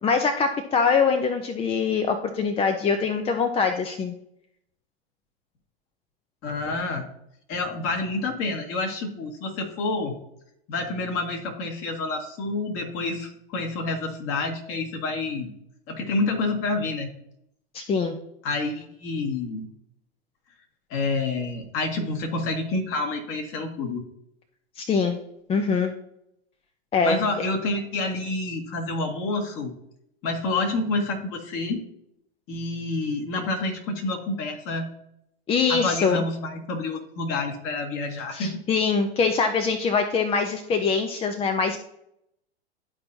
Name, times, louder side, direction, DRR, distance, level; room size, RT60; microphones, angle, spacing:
voice 1, 0.0-4.1 17.7-18.1 24.8-25.2 25.5-25.9 26.9-27.2 35.5-36.2 38.3-41.8, left 5 dB, 20° left, 7 dB, 0.6 m, -23 dB
voice 2, 6.4-7.1 7.5-10.1 10.7-15.5 15.9-17.1 18.4-19.7 20.9-24.0 27.0-29.7 30.2-31.8 32.5-34.9 35.7-38.6, left 3 dB, 45° left, 2 dB, 1.9 m, -28 dB
12.5 x 4.3 x 2.7 m, 0.76 s
hypercardioid pair, 105°, 31 cm